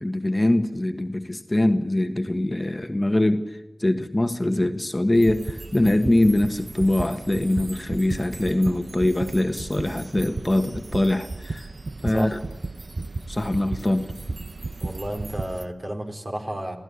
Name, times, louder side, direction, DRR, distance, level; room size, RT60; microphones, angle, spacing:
voice 1, 0.0-11.7 12.0-12.4 13.3-14.1, left 1 dB, 25° left, 1.4 m, -23 dB
sound 1, 5.1-15.7, right 3 dB, 60° right, 0.8 m, -34 dB
voice 2, 14.8-16.8, right 1 dB, 45° right, 4.1 m, -32 dB
27.0 x 16.0 x 9.9 m
wide cardioid pair, 75°, 0 cm